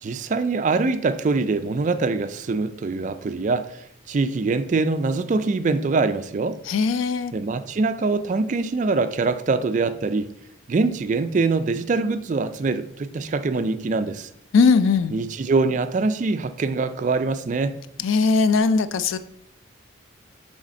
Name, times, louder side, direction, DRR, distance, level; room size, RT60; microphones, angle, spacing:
voice 1, 0.0-6.6 7.3-10.3 10.7-14.3 15.1-17.8, right 3 dB, 35° right, 0.3 m, -24 dB
voice 2, 6.6-7.3 14.5-15.2 18.0-19.2, left 4 dB, 75° left, 0.4 m, -19 dB
6.4 x 3.5 x 4.2 m
head